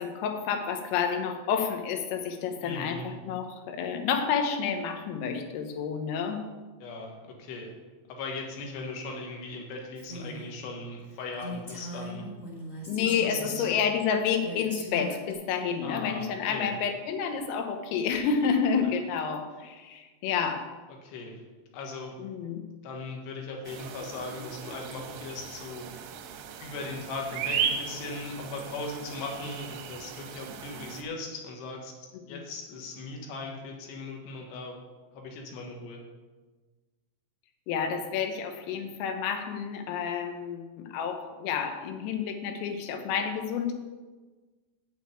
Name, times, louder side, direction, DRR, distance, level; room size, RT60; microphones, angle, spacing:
voice 1, 0.0-6.4 12.9-20.7 22.2-22.6 32.3-32.4 37.7-43.7, left 6 dB, 85° left, 6 dB, 3.7 m, -29 dB
voice 2, 2.6-3.1 6.8-7.7 8.1-12.3 13.2-13.7 15.8-16.2 16.5-16.7 21.0-21.4 21.7-22.1 22.8-26.1 26.6-31.9 32.3-34.8 35.1-36.0, left 3 dB, 65° left, 1 dB, 3.3 m, -38 dB
Female speech woman speaking, 9.9-10.6 11.0-11.1 11.4-13.7 14.4-15.3, equal, 25° left, 1.0 m, -40 dB
sound 1, 23.6-31.0, right 7 dB, 80° right, 2.5 m, -36 dB
8.8 x 6.3 x 8.4 m, 1.3 s
omnidirectional pair, 5.8 m